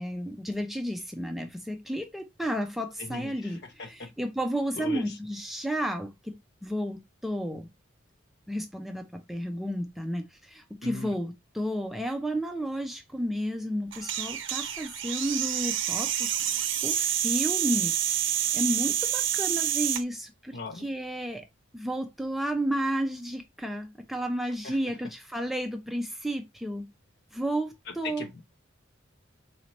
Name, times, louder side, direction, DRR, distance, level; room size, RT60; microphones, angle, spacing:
voice 1, 0.0-3.6 4.2-6.1 6.6-7.0 7.2-7.6 8.5-9.0 9.3-10.2 10.8-16.1 16.8-16.9 17.2-17.9 18.6-20.2 20.8-21.4 21.8-26.8 27.4-27.7 28.0-28.2, equal, ahead, 0.4 m, -31 dB
voice 2, 3.0-4.1 4.8-5.2 10.8-11.1 20.5-20.9 24.6-24.8 27.9-28.4, left 3 dB, 55° left, 0.7 m, -39 dB
sound 1, 13.9-20.0, right 11 dB, 65° right, 0.6 m, -28 dB
4.2 x 2.7 x 2.9 m
head